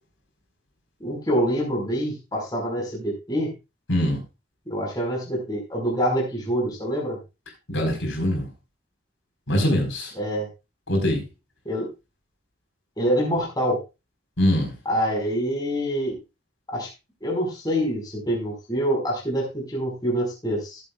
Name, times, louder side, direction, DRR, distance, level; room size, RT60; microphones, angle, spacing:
voice 1, 1.0-3.5 4.7-7.2 10.1-10.5 11.6-11.9 13.0-13.8 14.8-16.2 16.7-16.9 17.2-20.8, equal, 20° left, -2 dB, 5.2 m, -26 dB
voice 2, 3.9-4.2 7.7-8.5 9.5-10.1 10.9-11.2 14.4-14.7, equal, 75° left, 1 dB, 4.7 m, -22 dB
18.5 x 8.1 x 2.4 m, 0.27 s
head